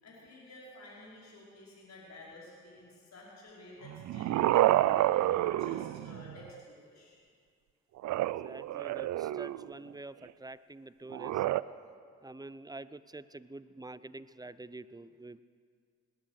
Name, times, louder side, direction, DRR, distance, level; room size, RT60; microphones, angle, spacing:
voice 1, 0.0-7.2, left 1 dB, 55° left, -6 dB, 5.0 m, -52 dB
sound 1, 3.8-6.5 8.0-9.7 11.1-11.6, right 14 dB, 60° right, 0.5 m, -29 dB
voice 2, 8.4-11.3 12.2-15.4, right 2 dB, 10° right, 16 dB, 0.5 m, -47 dB
19.5 x 10.0 x 6.4 m, 2.1 s
hypercardioid pair, 45°, 33 cm